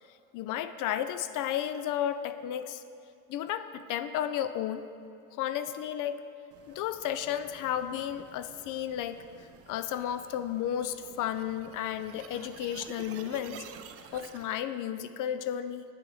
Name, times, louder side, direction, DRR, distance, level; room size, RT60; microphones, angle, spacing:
voice 1, 0.3-2.8 3.3-4.9 5.4-6.2 6.7-9.2 9.7-13.6 14.1-15.8, left 10 dB, 45° left, 12 dB, 0.5 m, -33 dB
sound 1, 6.5-14.5, right 8 dB, 35° right, 0.5 m, -51 dB
9.2 x 4.9 x 4.7 m, 2.5 s
hypercardioid pair, 85°, 45 cm